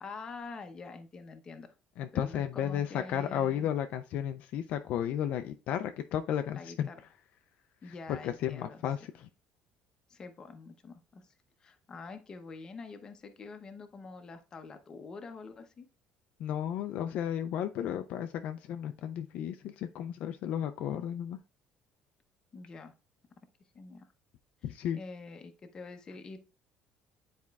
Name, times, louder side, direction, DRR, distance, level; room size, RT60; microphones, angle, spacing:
voice 1, 0.0-1.7 2.1-3.7 6.5-7.0 7.8-8.8 10.1-11.3 11.6-15.9 22.5-22.9 23.7-24.1 24.9-26.4, left 4 dB, 25° left, 8 dB, 0.7 m, -46 dB
voice 2, 2.0-6.9 7.8-9.3 16.4-21.4 24.6-25.0, left 10 dB, 60° left, 8 dB, 0.4 m, -33 dB
9.5 x 4.3 x 2.3 m, 0.31 s
cardioid pair, 165°, 3 cm